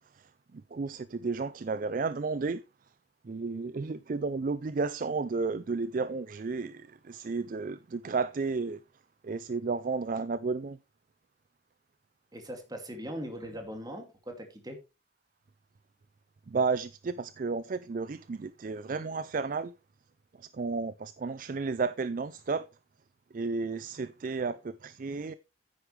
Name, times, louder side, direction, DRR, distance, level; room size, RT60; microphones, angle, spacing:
voice 1, 0.2-2.6 3.2-8.8 9.2-10.8 16.5-19.7 20.4-22.7 23.3-25.3, right 4 dB, 45° right, 0.4 m, -32 dB
voice 2, 12.3-14.8, equal, 20° right, 2.3 m, -40 dB
9.6 x 9.4 x 3.2 m
head